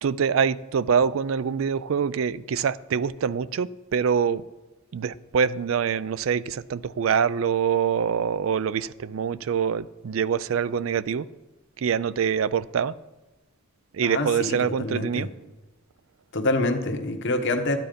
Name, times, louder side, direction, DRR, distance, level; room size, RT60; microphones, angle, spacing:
voice 1, 0.0-4.4 4.9-11.3 11.8-12.9 13.9-15.3, right 7 dB, 65° right, 18 dB, 0.4 m, -25 dB
voice 2, 14.0-15.3 16.3-17.8, left 2 dB, 55° left, 6 dB, 1.2 m, -26 dB
13.0 x 9.2 x 5.2 m, 1.1 s
head